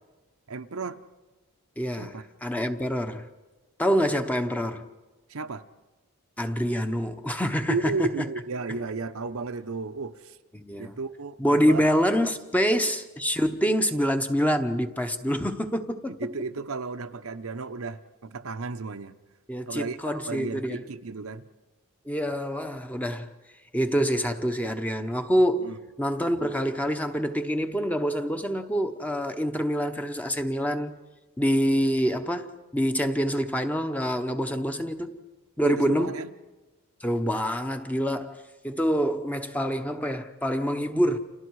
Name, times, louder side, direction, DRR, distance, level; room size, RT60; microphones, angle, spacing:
voice 1, 0.5-1.0 2.0-2.2 5.3-5.6 7.7-10.4 10.8-11.8 16.1-19.2 19.7-21.5 25.6-25.8 35.6-36.3, right 3 dB, 75° right, 0.8 m, -33 dB
voice 2, 1.8-3.3 3.8-4.9 6.4-8.3 10.5-10.9 11.4-16.2 19.5-20.8 22.1-23.3 23.7-30.9 31.4-35.2 35.6-36.1 37.0-41.2, equal, 5° left, 0.9 m, -26 dB
30.0 x 28.0 x 4.8 m
head